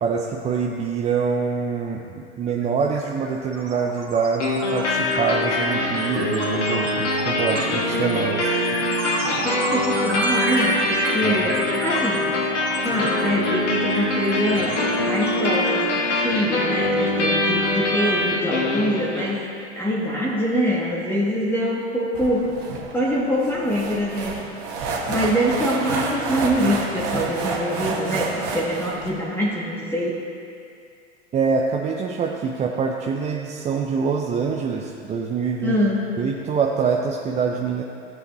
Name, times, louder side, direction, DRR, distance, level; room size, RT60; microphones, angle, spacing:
voice 1, 0.0-8.5 11.2-11.5 31.3-35.8 36.2-37.8, right 5 dB, 20° right, 0 dB, 0.5 m, -25 dB
sound 1, 2.5-2.6 2.9-17.3, right 2 dB, 75° right, 2.4 m, -31 dB
sound 2, 4.4-19.4, left 1 dB, 85° left, 1.6 m, -23 dB
voice 2, 9.4-12.3 12.8-22.5 22.9-24.4 25.1-30.2 35.6-36.1, equal, 5° left, -6 dB, 1.3 m, -24 dB
sound 3, 22.1-29.1, right 3 dB, 50° right, 1.7 m, -29 dB
13.5 x 7.8 x 3.1 m, 2.4 s
hypercardioid pair, 100°, 35 cm